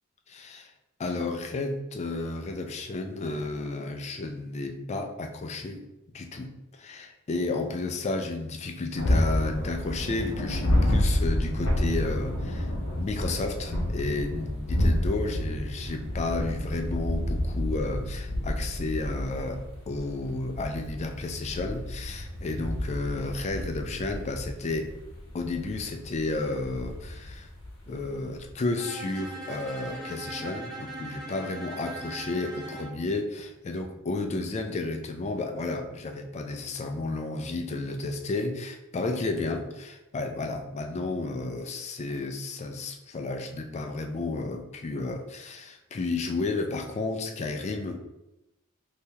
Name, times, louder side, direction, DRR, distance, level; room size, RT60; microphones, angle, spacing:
voice 1, 0.3-0.7 1.0-5.9 6.1-24.9 25.3-27.5 27.9-48.0, left 3 dB, 30° left, 5 dB, 0.3 m, -32 dB
sound 1, 8.9-28.5, left 1 dB, 70° left, 0.8 m, -30 dB
Bowed string instrument, 28.8-33.0, right 2 dB, ahead, 0.9 m, -40 dB
3.4 x 2.8 x 2.8 m, 0.93 s
head